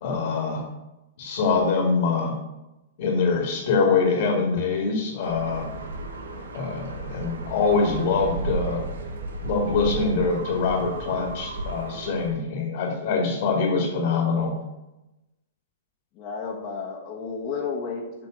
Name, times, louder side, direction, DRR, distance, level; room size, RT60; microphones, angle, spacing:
voice 1, 0.0-0.7 1.2-2.4 3.0-5.7 6.5-8.8 9.4-14.6, left 4 dB, 60° left, -1 dB, 2.1 m, -24 dB
sound 1, 5.2-12.3, right 2 dB, 85° right, 1.2 m, -34 dB
voice 2, 16.1-18.3, left 5 dB, 40° left, -2 dB, 1.2 m, -32 dB
7.7 x 3.4 x 6.3 m, 0.96 s
hypercardioid pair, 130°, 0 cm